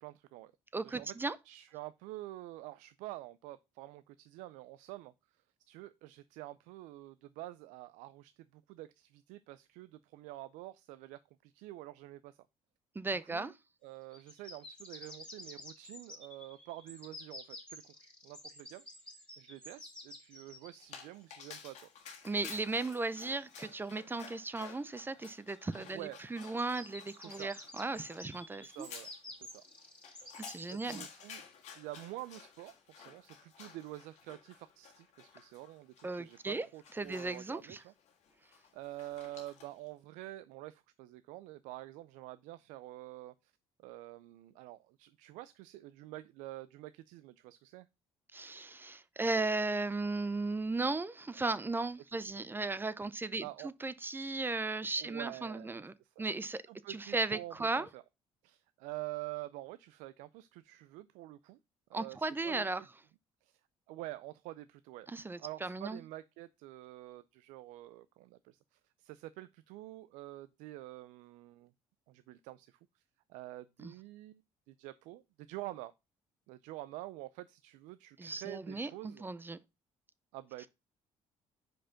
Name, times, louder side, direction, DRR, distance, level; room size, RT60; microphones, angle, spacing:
voice 1, 0.0-0.5 0.8-1.2 1.4-5.1 5.7-12.4 13.2-13.5 13.8-18.8 19.4-21.9 25.8-26.2 27.2-27.5 28.6-29.1 29.4-29.6 30.7-31.4 31.7-37.9 38.7-43.5 43.8-47.9 52.1-52.2 53.4-53.7 55.0-56.3 56.7-58.0 58.4-61.6 61.9-62.6 63.4-63.6 63.9-65.1 65.4-71.7 72.1-73.0 73.3-74.4 74.7-75.2 75.5-75.9 76.5-79.2 80.3-80.7, right 17 dB, 90° right, 0.4 m, -47 dB
voice 2, 0.7-1.4 13.0-13.5 22.2-28.9 30.4-31.1 36.0-36.7 37.0-37.8 48.3-56.6 56.9-57.9 61.9-62.8 65.1-66.0 73.8-73.9 78.2-79.6, right 3 dB, 15° right, 0.5 m, -36 dB
sound 1, 14.1-21.0 22.4-24.0 25.6-25.7 26.0-26.1 26.4-31.1 31.6-31.7, left 1 dB, 10° left, 2.5 m, -51 dB
Dog, 20.8-39.9, left 7 dB, 70° left, 1.6 m, -53 dB
5.0 x 4.5 x 5.7 m
cardioid pair, 85°, 12 cm